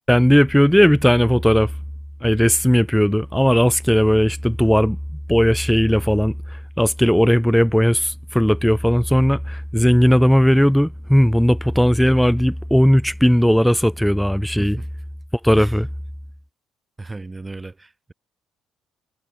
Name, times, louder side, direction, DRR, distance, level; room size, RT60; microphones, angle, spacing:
voice 1, 0.1-1.7 2.2-5.0 5.3-6.3 6.8-14.8 15.4-15.9, equal, ahead, 0.6 m, -16 dB
voice 2, 14.6-14.9 15.6-15.8 17.0-18.1, right 3 dB, 20° right, 7.8 m, -36 dB
cardioid pair, 90°, 0 cm